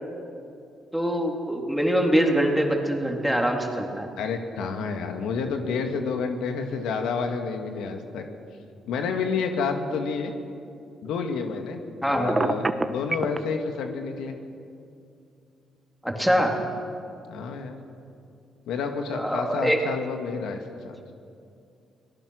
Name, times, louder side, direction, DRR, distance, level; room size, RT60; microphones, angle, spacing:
voice 1, 0.9-4.1 12.0-12.3 16.0-16.6 19.1-19.8, equal, ahead, 1 dB, 3.2 m, -24 dB
voice 2, 4.2-8.2 8.9-10.3 11.0-11.8 12.1-14.4 17.3-17.8 18.7-21.0, left 5 dB, 85° left, 5 dB, 2.0 m, -29 dB
Telephone, 12.3-13.4, right 3 dB, 25° right, 1.2 m, -24 dB
26.0 x 19.0 x 6.4 m, 2.5 s
cardioid pair, 90°, 0 cm